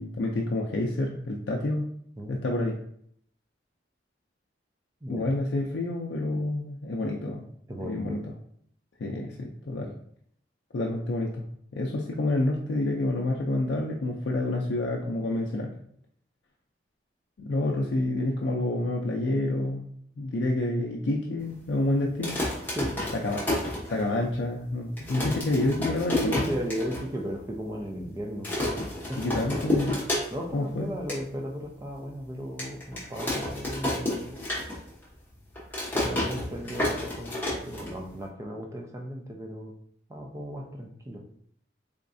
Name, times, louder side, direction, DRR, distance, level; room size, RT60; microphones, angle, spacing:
voice 1, 0.0-1.9 2.3-2.8 5.1-7.5 7.8-8.2 9.0-9.9 10.7-11.5 11.7-15.7 17.4-19.9 20.2-22.4 23.1-23.4 23.9-26.5 29.2-30.0 30.5-30.9, left 2 dB, 80° left, -1 dB, 0.4 m, -28 dB
voice 2, 7.7-8.2 22.7-23.0 26.2-29.3 29.5-29.9 30.3-34.4 35.9-39.7 40.1-41.2, equal, 15° right, 1 dB, 0.5 m, -36 dB
sound 1, 22.1-24.4 24.7-24.8 25.0-27.0 27.4-27.5 27.7-28.1 28.4-30.6 30.9-31.2 31.7-31.8 32.6-35.0 35.3-38.3, left 1 dB, 10° left, 0.9 m, -30 dB
3.5 x 3.1 x 2.6 m, 0.66 s
head